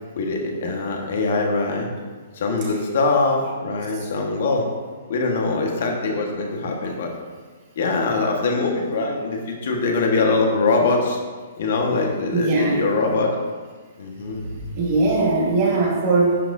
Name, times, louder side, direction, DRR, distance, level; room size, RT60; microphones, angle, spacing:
voice 1, 0.1-1.9 2.3-4.6 5.1-7.1 7.7-11.2 11.6-13.3 14.0-14.4, left 3 dB, 60° left, 1 dB, 1.5 m, -22 dB
voice 2, 12.3-12.8 14.5-16.4, right 3 dB, 30° right, -4 dB, 2.0 m, -20 dB
10.0 x 5.9 x 2.7 m, 1.5 s
hypercardioid pair, 165°, 0 cm